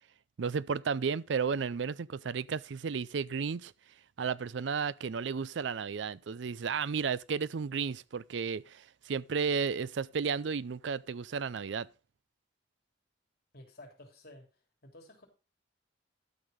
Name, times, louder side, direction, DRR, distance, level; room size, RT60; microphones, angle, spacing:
voice 1, 0.4-3.7 4.2-11.9, right 6 dB, 70° right, 0.4 m, -33 dB
voice 2, 13.5-14.5 14.8-15.3, left 1 dB, 55° left, 3.4 m, -52 dB
12.5 x 6.5 x 5.1 m
head